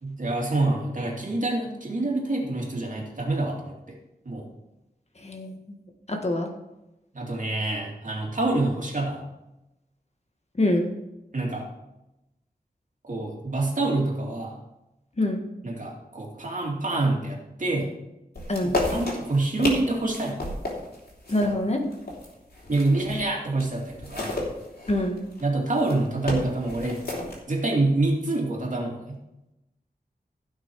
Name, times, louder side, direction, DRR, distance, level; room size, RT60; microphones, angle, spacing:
voice 1, 0.0-3.7 4.2-4.5 7.1-9.2 11.3-11.7 13.0-14.6 15.6-17.9 18.9-20.4 22.7-24.3 25.4-27.0 27.5-29.2, right 2 dB, 50° right, -1 dB, 2.6 m, -26 dB
voice 2, 5.2-5.8 6.1-6.5 10.6-10.9 15.2-15.4 18.5-18.8 21.3-21.8 24.9-25.2, left 1 dB, 40° left, 2 dB, 1.6 m, -25 dB
sound 1, 18.4-23.3 23.6-27.4, left 2 dB, 70° left, 3.3 m, -32 dB
15.5 x 6.1 x 4.7 m, 0.94 s
wide cardioid pair, 75°, 17 cm